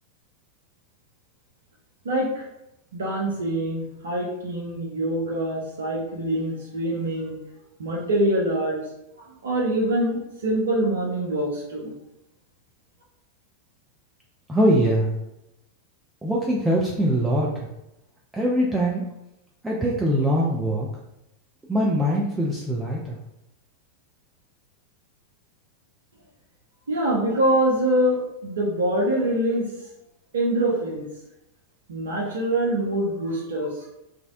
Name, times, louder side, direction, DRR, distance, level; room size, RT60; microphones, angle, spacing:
voice 1, 2.0-2.5 2.9-7.3 7.8-8.8 9.2-11.9 26.9-29.7 30.3-31.0 31.9-33.9, right 1 dB, 65° right, -3 dB, 0.5 m, -24 dB
voice 2, 14.5-15.1 16.2-17.7 18.3-19.1 19.6-20.9 21.7-23.2, equal, 10° right, -4 dB, 0.3 m, -22 dB
2.5 x 2.0 x 2.4 m, 0.87 s
figure-of-eight pair, 90°, 0 cm